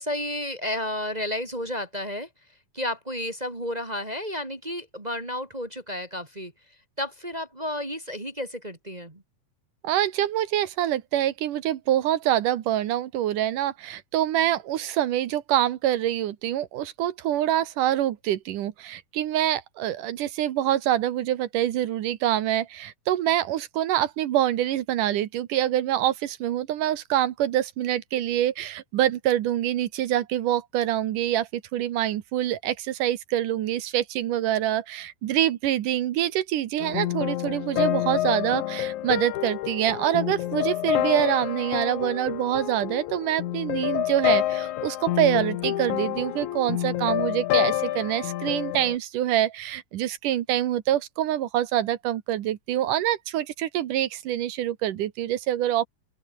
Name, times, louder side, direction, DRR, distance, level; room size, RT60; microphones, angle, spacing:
voice 1, 0.0-2.3 2.7-6.5 7.0-9.2, left 1 dB, 15° right, 1.9 m, -32 dB
voice 2, 9.8-55.9, right 12 dB, 70° right, 2.7 m, -25 dB
sound 1, 36.8-49.0, left 13 dB, 70° left, 2.3 m, -28 dB
open air
omnidirectional pair, 3.9 m